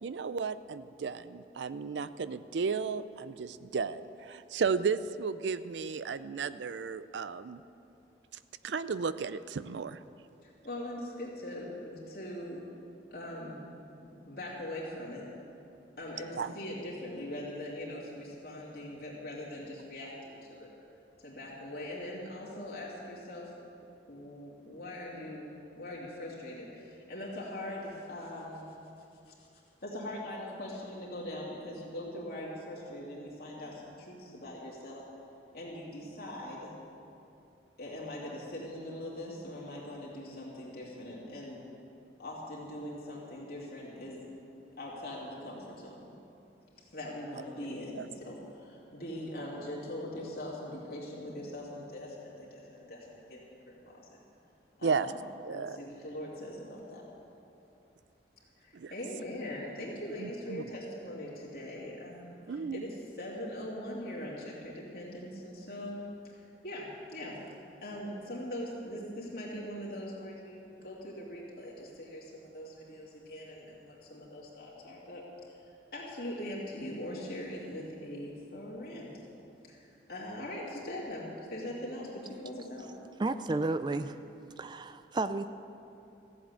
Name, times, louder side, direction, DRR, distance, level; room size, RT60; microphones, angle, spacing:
voice 1, 0.0-7.6 8.6-10.0 16.4-16.5 48.0-48.1 54.8-55.1 55.4-55.8 58.7-58.9 60.2-60.6 62.5-62.8, right 5 dB, 90° right, 14 dB, 0.5 m, -34 dB
voice 2, 10.4-12.6 13.1-13.7 13.9-15.3 16.0-20.7 21.2-23.7 24.1-28.8 29.3-29.5 29.8-35.0 35.5-36.8 37.8-41.6 42.2-44.3 44.8-46.1 46.9-54.2 54.8-55.1 55.5-57.0 58.6-66.0 66.3-67.4 67.8-79.1 79.7-82.9, left 1 dB, 60° left, -5 dB, 2.6 m, -41 dB
voice 3, 83.2-84.2 84.6-85.5, right 2 dB, 25° right, 11 dB, 0.4 m, -32 dB
15.0 x 7.7 x 8.3 m, 2.7 s
head